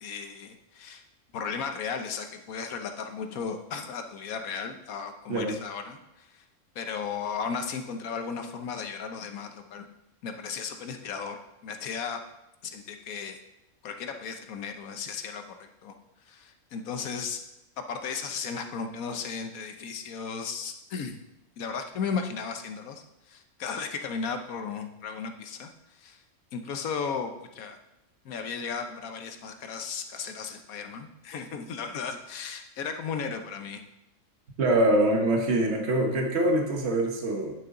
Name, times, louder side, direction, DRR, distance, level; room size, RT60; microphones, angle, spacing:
voice 1, 0.0-1.0 1.3-6.4 6.7-9.9 10.2-12.2 12.6-13.4 13.8-15.9 16.2-17.4 17.9-21.2 21.6-26.2 26.5-27.8 28.2-33.8, left 6 dB, 90° left, 6 dB, 1.3 m, -35 dB
voice 2, 34.6-37.5, right 1 dB, 55° right, 2 dB, 1.5 m, -24 dB
10.5 x 6.7 x 3.8 m, 0.91 s
omnidirectional pair, 1.4 m